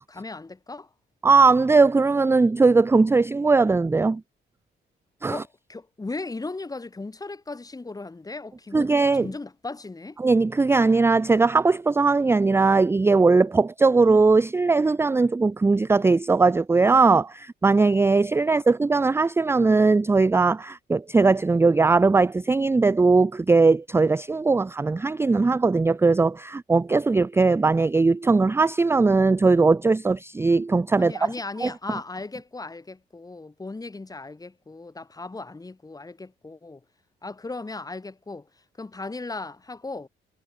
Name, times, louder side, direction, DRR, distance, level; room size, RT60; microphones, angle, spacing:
voice 1, 0.1-0.9 5.3-8.9 9.2-10.2 31.0-36.8 37.2-38.5 38.8-40.1, left 3 dB, 20° left, 1.6 m, -37 dB
voice 2, 1.2-4.2 5.2-5.4 8.7-9.3 10.2-31.3 31.6-31.7, right 3 dB, 10° right, 0.4 m, -19 dB
cardioid pair, 90°, 20 cm